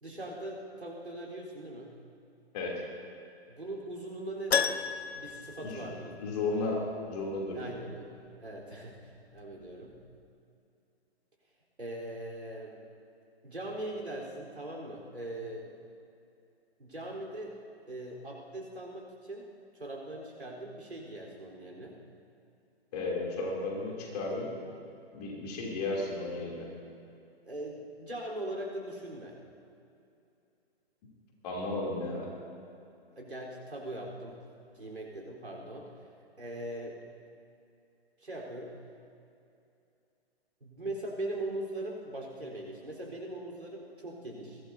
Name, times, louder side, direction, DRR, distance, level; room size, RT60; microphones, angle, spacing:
voice 1, 0.0-1.9 3.5-6.2 7.5-8.1 8.4-10.0 11.8-12.8 13.4-15.7 16.8-17.6 17.9-19.5 19.7-22.0 27.5-29.4 33.2-34.4 34.7-35.9 36.4-37.0 38.2-38.7 40.6-44.6, right 1 dB, 85° right, -2 dB, 4.1 m, -40 dB
Keyboard (musical), 4.5-6.6 6.8-6.9 9.6-9.7 9.9-10.0, left 7 dB, 80° left, 0.7 m, -32 dB
voice 2, 6.2-6.8 7.0-7.6 22.9-24.5 25.1-26.7 31.4-32.3, left 3 dB, 40° left, -2 dB, 3.1 m, -34 dB
21.5 x 17.5 x 2.8 m, 2.6 s
figure-of-eight pair, 125°, 32 cm